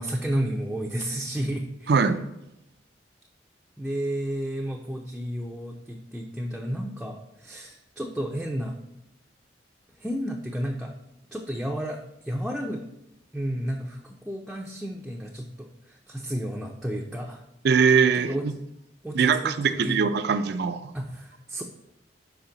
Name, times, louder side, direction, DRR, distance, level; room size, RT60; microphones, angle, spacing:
voice 1, 0.0-2.1 3.8-8.7 9.9-10.9 11.3-12.8 13.3-17.4 18.1-18.4 19.0-20.0 20.9-21.6, right 1 dB, ahead, -1 dB, 0.4 m, -32 dB
voice 2, 1.9-2.2 17.6-18.4 19.1-20.9, right 6 dB, 60° right, 9 dB, 0.4 m, -21 dB
5.9 x 4.9 x 3.8 m, 0.87 s
head